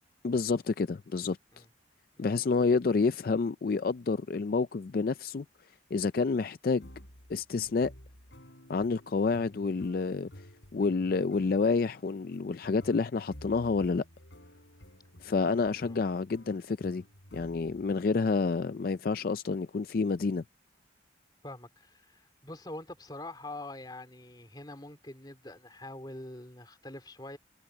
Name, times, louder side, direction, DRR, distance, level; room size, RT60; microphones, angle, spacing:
voice 1, 0.2-1.4 2.2-5.4 5.9-6.9 7.3-7.9 8.7-10.3 10.7-14.0 15.2-17.0 17.3-20.4, left 4 dB, 50° left, 0.4 m, -29 dB
sound 1, 6.8-18.0, equal, 75° left, 5.9 m, -53 dB
voice 2, 15.4-16.0 21.4-27.4, left 2 dB, 25° left, 3.0 m, -45 dB
head